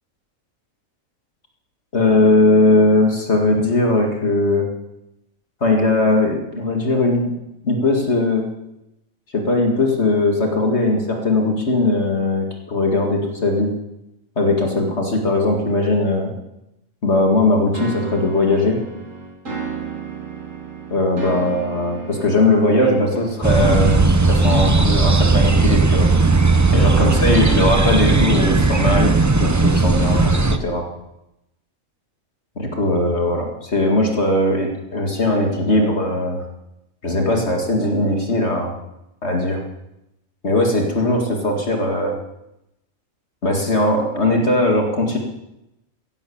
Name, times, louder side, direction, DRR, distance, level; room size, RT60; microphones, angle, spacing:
voice 1, 1.9-4.7 5.6-7.3 7.6-8.5 9.3-13.7 14.4-16.3 17.0-18.8 20.9-26.1 26.7-30.3 30.6-30.9 32.6-36.4 37.0-38.7 39.2-39.6 40.4-42.1 43.4-45.2, left 2 dB, 50° left, 2 dB, 2.4 m, -19 dB
sound 1, 17.7-24.6, right 5 dB, 65° right, 3.8 m, -34 dB
sound 2, 23.4-30.6, right 3 dB, 20° right, 0.6 m, -16 dB
16.5 x 11.0 x 7.1 m, 0.89 s
omnidirectional pair, 1.4 m